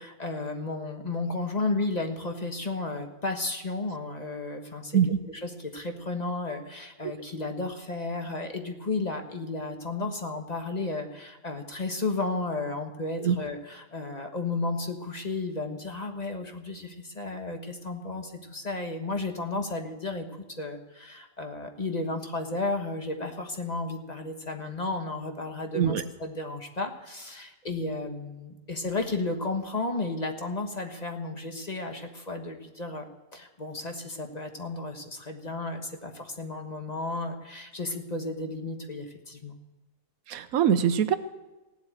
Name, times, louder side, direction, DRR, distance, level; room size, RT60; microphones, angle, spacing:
voice 1, 0.0-5.0 5.3-39.6, left 2 dB, 30° left, 4 dB, 1.4 m, -33 dB
voice 2, 40.3-41.2, right 8 dB, 85° right, 12 dB, 1.2 m, -23 dB
16.5 x 8.1 x 9.0 m, 1.1 s
omnidirectional pair, 1.4 m